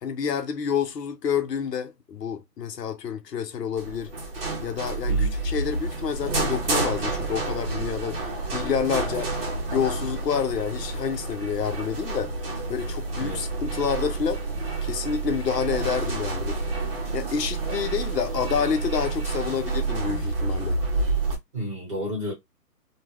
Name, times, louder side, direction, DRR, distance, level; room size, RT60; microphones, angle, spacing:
voice 1, 0.0-4.1 4.6-9.3 9.7-12.3 12.7-14.4 14.8-16.6 17.1-20.8, left 7 dB, 75° left, 0.8 m, -28 dB
sound 1, 3.8-21.3, right 3 dB, 35° right, 0.8 m, -29 dB
voice 2, 21.5-22.3, left 1 dB, 20° right, 1.1 m, -31 dB
2.3 x 2.3 x 3.2 m
hypercardioid pair, 165°, 49 cm